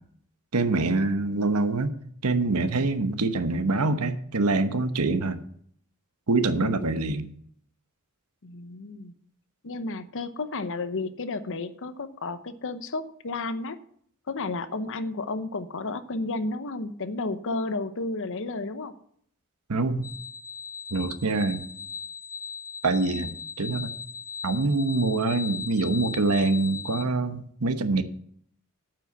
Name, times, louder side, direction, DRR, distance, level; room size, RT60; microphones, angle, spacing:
voice 1, 0.5-1.9 2.2-5.4 6.3-7.3 19.7-20.1 20.9-21.7 22.8-23.3 23.6-23.9 24.4-28.0, right 3 dB, 80° right, 10 dB, 1.0 m, -25 dB
voice 2, 6.5-6.8 8.4-9.1 9.6-13.8 14.3-18.9, left 3 dB, 60° left, 12 dB, 0.8 m, -32 dB
sound 1, 20.0-27.0, left 6 dB, 15° left, 0.7 m, -38 dB
8.9 x 5.8 x 8.2 m, 0.64 s
head